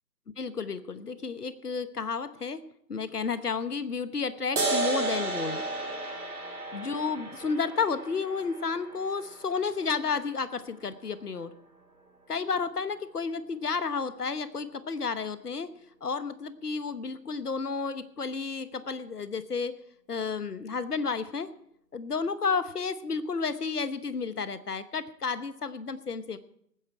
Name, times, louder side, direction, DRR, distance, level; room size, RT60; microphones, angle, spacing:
voice 1, 0.4-2.6 2.9-5.6 6.7-11.5 12.3-15.7 16.0-19.7 20.1-21.5 21.9-26.4, left 5 dB, 65° left, 14 dB, 1.1 m, -31 dB
sound 1, 4.6-11.5, right 2 dB, 60° right, 2.4 m, -34 dB
20.0 x 9.2 x 4.7 m, 0.71 s
figure-of-eight pair, 145°, 49 cm